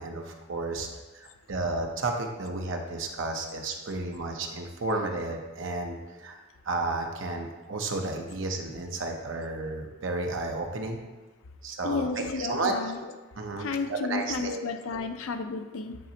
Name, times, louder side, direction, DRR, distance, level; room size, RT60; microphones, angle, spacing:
voice 1, 0.0-6.4 6.6-11.0 11.6-12.9 13.4-14.6, right 2 dB, 65° right, 3 dB, 0.8 m, -32 dB
voice 2, 11.8-13.0 13.6-16.0, left 4 dB, 80° left, 8 dB, 0.5 m, -32 dB
8.9 x 4.2 x 2.8 m, 1.2 s
head